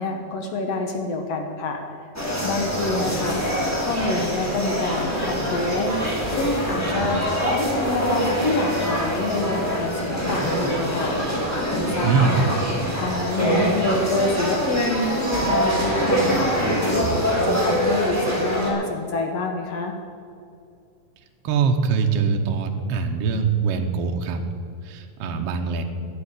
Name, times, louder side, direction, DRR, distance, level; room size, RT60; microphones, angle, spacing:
voice 1, 0.0-1.8 2.4-6.0 6.3-12.6 13.0-17.1 17.4-19.9, left 3 dB, 70° left, 4 dB, 1.5 m, -27 dB
sound 1, 2.1-18.7, equal, 5° left, 1.7 m, -24 dB
voice 2, 12.0-12.4 21.4-24.4 24.8-25.8, right 5 dB, 70° right, 4 dB, 1.4 m, -23 dB
11.5 x 7.1 x 9.9 m, 2.4 s
omnidirectional pair, 4.1 m